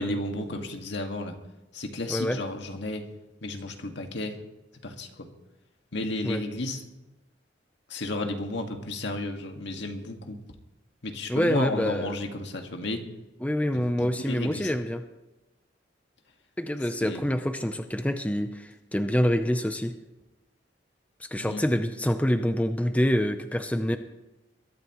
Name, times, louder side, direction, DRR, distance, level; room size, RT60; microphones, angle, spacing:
voice 1, 0.0-1.4 1.7-3.1 3.4-4.4 4.8-5.3 5.9-6.8 7.9-10.4 11.0-13.1 13.7-14.7 17.0-17.2 21.4-21.6 23.9-24.0, left 2 dB, 70° left, 4 dB, 1.9 m, -33 dB
voice 2, 2.1-2.4 6.2-6.4 11.3-12.2 13.4-15.0 16.6-19.9 21.2-24.0, equal, 10° left, 7 dB, 0.6 m, -26 dB
22.0 x 13.5 x 3.1 m, 1.0 s
head